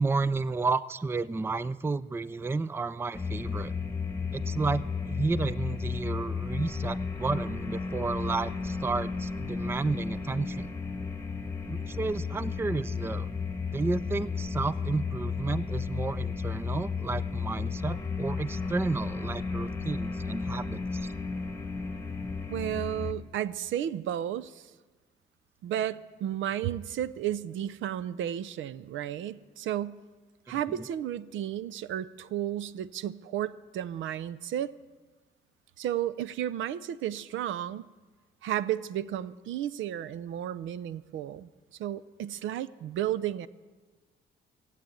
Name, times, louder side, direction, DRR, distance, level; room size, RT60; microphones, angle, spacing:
voice 1, 0.0-3.7 4.3-10.7 11.7-13.3 13.7-21.1 30.5-30.9, right 3 dB, 10° right, 19 dB, 0.4 m, -32 dB
sound 1, 3.1-23.1, left 5 dB, 10° left, 1.3 m, -33 dB
voice 2, 22.5-24.6 25.6-30.0 30.5-34.7 35.8-37.9 38.4-41.5 41.8-43.5, right 11 dB, 75° right, 18 dB, 0.5 m, -33 dB
17.0 x 8.4 x 9.1 m, 1.4 s
cardioid pair, 90°, 20 cm